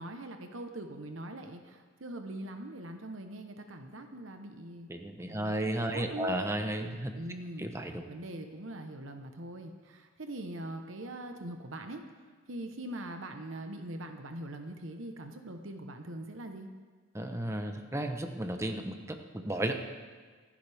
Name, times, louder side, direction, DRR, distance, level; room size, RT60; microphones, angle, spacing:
voice 1, 0.0-4.9 5.2-6.3 7.1-12.0 12.5-16.7, right 1 dB, 65° right, 5 dB, 1.1 m, -42 dB
voice 2, 4.9-7.1 7.6-8.0 17.1-19.8, right 1 dB, 15° right, 5 dB, 0.9 m, -33 dB
26.5 x 10.0 x 3.5 m, 1.5 s
head